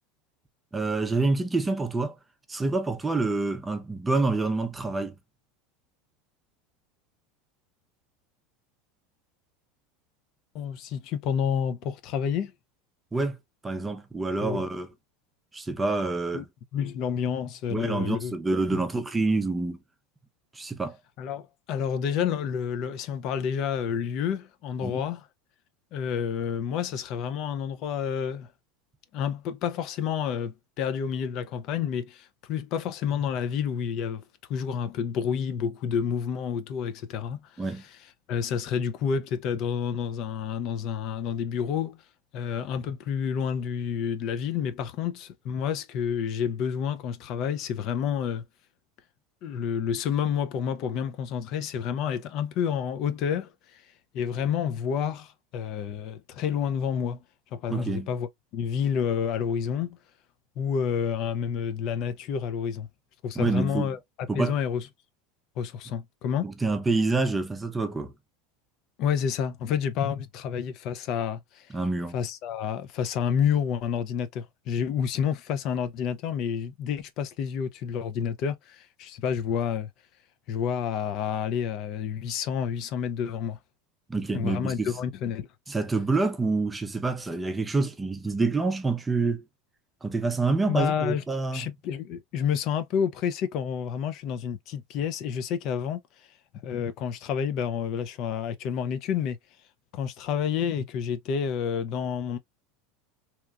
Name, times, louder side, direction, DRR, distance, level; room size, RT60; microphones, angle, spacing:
voice 1, 0.7-2.1 2.5-5.1 13.1-13.4 13.6-14.9 15.5-16.5 17.7-19.8 20.5-21.0 24.8-25.0 37.6-37.8 57.7-58.1 63.4-63.9 64.3-64.5 66.4-68.1 71.7-72.2 84.1-84.9 85.7-89.4 90.0-91.6, right 3 dB, 10° right, 0.5 m, -27 dB
voice 2, 10.5-12.5 14.4-14.6 16.3-16.4 16.7-18.3 18.7-18.8 21.2-25.3 25.9-28.5 29.1-34.2 34.5-38.0 38.3-42.0 42.3-48.4 49.4-57.2 57.5-60.0 60.6-62.9 63.2-64.0 64.4-64.9 65.6-66.5 69.0-71.8 72.1-79.9 80.5-83.6 84.3-85.5 90.7-91.2 91.5-96.3 96.6-99.4 99.9-102.4, left 7 dB, 50° left, 0.4 m, -29 dB
2.8 x 2.3 x 2.3 m
supercardioid pair, 130°, 0 cm